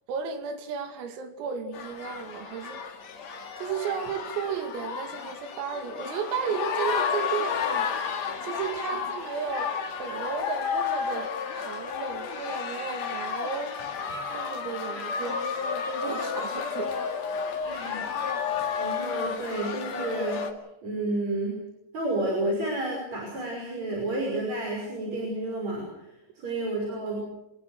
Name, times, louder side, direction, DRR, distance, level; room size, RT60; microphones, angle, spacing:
voice 1, 0.1-2.9 3.3-13.8 14.3-16.9, right 6 dB, 85° right, 6 dB, 5.2 m, -34 dB
sound 1, 1.7-20.5, left 6 dB, 45° left, 2.4 m, -32 dB
voice 2, 17.6-18.0 18.8-20.5 20.8-21.6 21.9-27.2, right 2 dB, 35° right, -1 dB, 6.6 m, -31 dB
26.5 x 20.5 x 6.5 m, 0.90 s
omnidirectional pair, 5.9 m